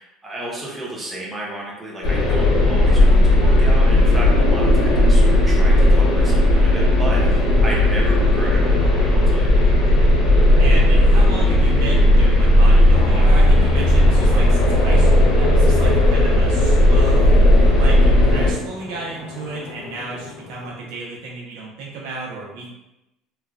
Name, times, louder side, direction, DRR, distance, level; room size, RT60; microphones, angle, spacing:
voice 1, 0.0-9.7, right 1 dB, 10° right, -5 dB, 0.5 m, -33 dB
sound 1, 2.0-18.5, left 1 dB, 80° left, 1.4 m, -15 dB
sound 2, 5.3-16.0, right 2 dB, 30° right, 1.2 m, -26 dB
voice 2, 10.6-17.4 17.7-22.7, right 3 dB, 80° right, -3 dB, 0.8 m, -32 dB
sound 3, 12.9-20.7, left 4 dB, 60° left, 0.3 m, -35 dB
3.1 x 2.4 x 2.3 m, 0.93 s
cardioid pair, 180°, 0 cm